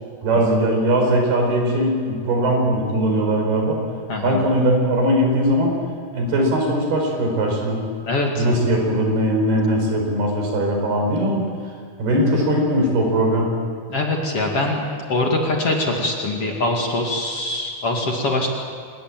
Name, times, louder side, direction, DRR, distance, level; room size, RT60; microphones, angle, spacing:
voice 1, 0.2-3.8 4.2-5.7 6.1-7.8 8.4-11.4 12.0-13.5, right 1 dB, 80° right, 1 dB, 6.6 m, -20 dB
voice 2, 8.1-8.4 13.9-14.8 15.1-18.5, left 2 dB, 40° left, 0 dB, 3.0 m, -23 dB
25.5 x 21.0 x 7.6 m, 2.2 s
omnidirectional pair, 4.5 m